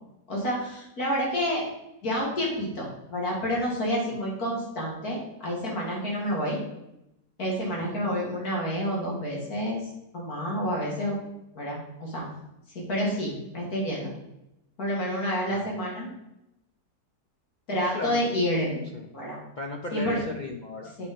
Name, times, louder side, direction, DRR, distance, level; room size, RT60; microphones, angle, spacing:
voice 1, 0.3-1.6 2.0-6.6 7.4-9.8 10.1-11.2 11.5-12.2 12.7-14.1 14.8-16.1 17.7-18.8 19.1-19.4 19.9-20.2 21.0-21.1, equal, 65° left, -4 dB, 2.5 m, -29 dB
voice 2, 17.8-18.2 18.9-19.1 19.6-20.9, left 3 dB, 80° left, 1 dB, 0.4 m, -35 dB
8.5 x 4.2 x 5.1 m, 0.87 s
omnidirectional pair, 1.7 m